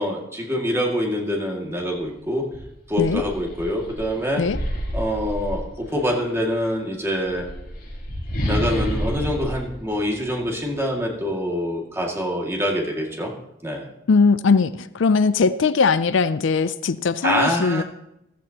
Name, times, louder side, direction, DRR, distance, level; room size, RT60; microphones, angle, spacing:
voice 1, 0.0-2.5 2.9-4.4 4.9-7.5 8.5-13.3 13.6-13.9 17.2-17.8, equal, 15° right, -1 dB, 2.1 m, -25 dB
sound 1, 2.0-2.1 2.5-6.1 7.1-10.7, equal, 50° left, 4.6 m, -29 dB
voice 2, 14.1-17.8, left 4 dB, 75° left, 14 dB, 0.5 m, -20 dB
14.5 x 14.0 x 2.9 m, 0.84 s
head